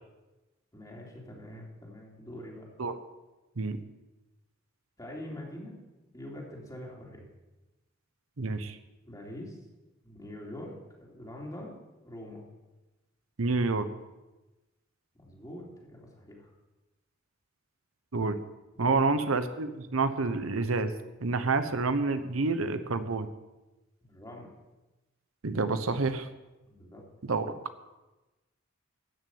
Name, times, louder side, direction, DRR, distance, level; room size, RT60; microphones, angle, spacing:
voice 1, 0.7-2.7 5.0-5.8 6.1-7.3 9.0-9.6 10.0-12.5 15.2-16.5 18.7-19.0 24.0-24.5 26.6-27.0, left 1 dB, 20° left, -2 dB, 3.1 m, -44 dB
voice 2, 8.4-8.8 13.4-13.9 18.1-18.4 18.8-20.9 21.2-23.3 25.4-26.3 27.3-27.5, right 3 dB, 85° right, 10 dB, 0.9 m, -28 dB
14.0 x 6.3 x 8.6 m, 1.1 s
head